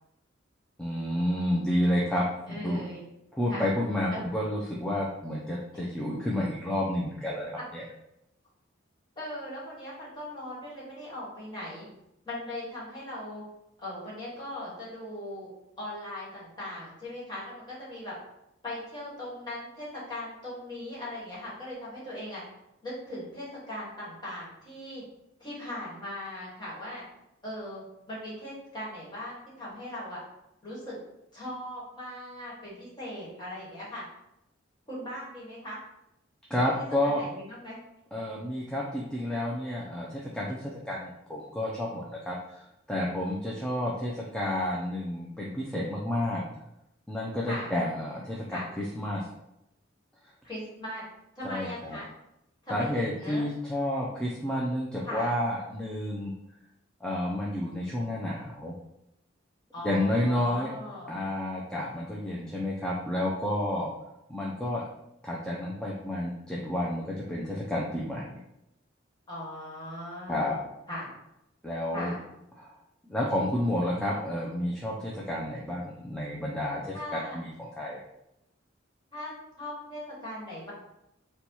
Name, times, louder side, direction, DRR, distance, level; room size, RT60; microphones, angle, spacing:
voice 1, 0.8-2.8 3.3-7.8 36.5-37.2 38.1-46.4 47.1-49.2 51.4-52.0 52.7-56.3 57.0-58.7 59.8-60.7 61.1-63.9 64.3-64.8 65.2-68.4 70.3-70.5 71.6-72.1 72.6-72.8 73.1-78.0, left 1 dB, 5° left, -4 dB, 0.3 m, -30 dB
voice 2, 2.5-3.0 3.5-3.7 4.1-4.2 5.7-5.8 9.1-11.8 12.2-13.4 13.8-15.5 15.8-18.1 18.6-22.4 22.8-25.0 25.4-27.0 27.4-30.2 30.6-31.0 31.3-34.0 34.9-35.8 36.8-37.8 47.5-47.7 48.5-48.7 50.4-51.0 51.3-52.1 52.6-53.5 55.0-55.3 59.7-61.1 69.3-71.1 71.9-72.2 76.9-77.4 79.1-79.3 79.6-80.7, left 1 dB, 20° left, -7 dB, 1.4 m, -39 dB
4.1 x 2.2 x 2.8 m, 0.85 s
head